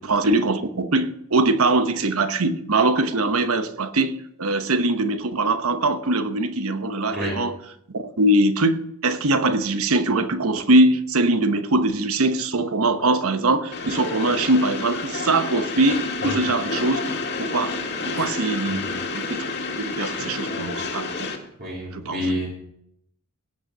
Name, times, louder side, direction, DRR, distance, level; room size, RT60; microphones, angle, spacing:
voice 1, 0.0-7.6 7.9-17.0 17.4-17.7 18.0-18.8 19.1-19.5 19.8-21.3 21.9-22.3, right 2 dB, 70° right, 1.0 m, -22 dB
Train, 13.7-21.4, left 3 dB, 50° left, 2.2 m, -29 dB
voice 2, 21.6-22.5, equal, 50° right, 3.8 m, -29 dB
17.5 x 6.6 x 6.8 m
head